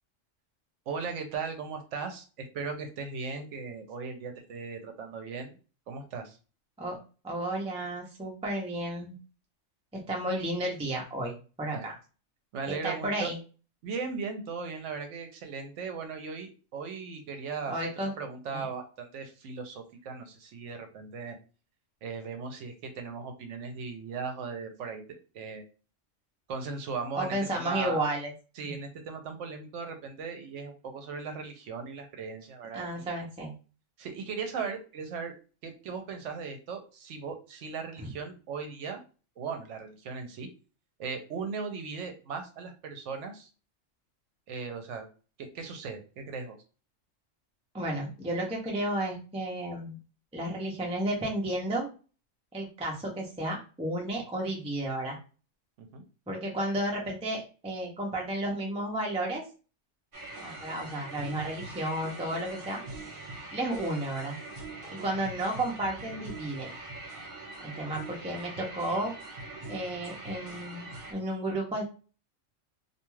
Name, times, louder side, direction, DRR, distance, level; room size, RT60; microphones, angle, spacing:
voice 1, 0.9-5.5 5.9-6.4 11.7-11.9 12.5-13.3 13.8-17.7 18.2-21.4 22.0-25.6 26.5-28.0 28.6-33.1 34.0-35.3 35.6-39.0 39.4-40.5 41.0-43.5 44.5-45.1 45.4-46.6 55.8-56.0, right 5 dB, 70° right, 5 dB, 0.9 m, -38 dB
voice 2, 7.2-9.1 10.1-11.9 12.7-13.4 17.7-18.1 18.5-18.6 27.2-28.3 28.6-28.8 32.7-33.5 38.0-38.1 47.7-50.0 50.3-51.9 52.5-55.2 56.3-59.4 60.4-62.8 63.5-64.4 64.9-66.7 67.6-69.1 69.7-71.8, right 1 dB, 10° right, -1 dB, 0.3 m, -32 dB
sound 1, 60.1-71.1, right 2 dB, 45° right, 1.0 m, -43 dB
2.5 x 2.3 x 3.0 m, 0.35 s
omnidirectional pair, 1.3 m